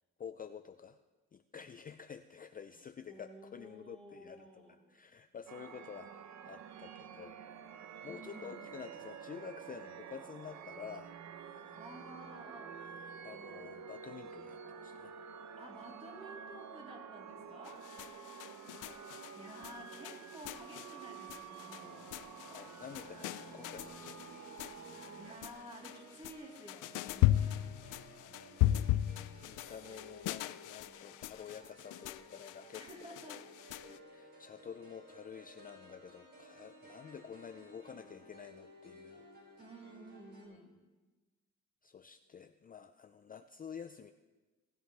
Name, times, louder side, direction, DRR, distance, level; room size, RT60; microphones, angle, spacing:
voice 1, 0.2-1.0 1.3-4.6 4.9-7.4 8.0-11.1 13.2-15.1 22.5-24.8 28.1-32.8 33.3-33.4 33.8-39.2 40.5-40.6 41.8-44.1, left 7 dB, 30° left, 9 dB, 0.4 m, -50 dB
voice 2, 3.1-4.8 8.1-8.6 11.7-12.8 15.6-17.9 19.3-22.2 25.2-27.7 32.7-33.4 39.6-40.8, right 1 dB, 20° right, -3 dB, 3.6 m, -52 dB
sound 1, 5.5-25.4, right 7 dB, 65° right, 0.9 m, -49 dB
sound 2, 17.7-34.0, left 14 dB, 90° left, 0.5 m, -37 dB
sound 3, 21.4-40.5, equal, 35° right, 5.2 m, -57 dB
18.5 x 11.0 x 3.4 m, 1.2 s
cardioid pair, 90°, 30 cm